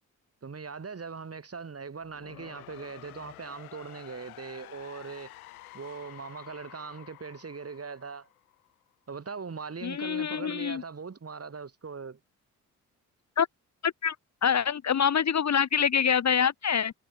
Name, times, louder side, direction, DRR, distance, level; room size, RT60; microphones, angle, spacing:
voice 1, 0.4-5.3 5.7-8.3 9.1-12.2, right 5 dB, 35° right, 6.6 m, -40 dB
sound 1, 2.0-8.9, left 17 dB, 75° left, 3.2 m, -50 dB
voice 2, 9.8-10.8 13.4-13.5 13.8-14.2 14.4-16.9, left 7 dB, 40° left, 1.7 m, -25 dB
figure-of-eight pair, 45°, 43 cm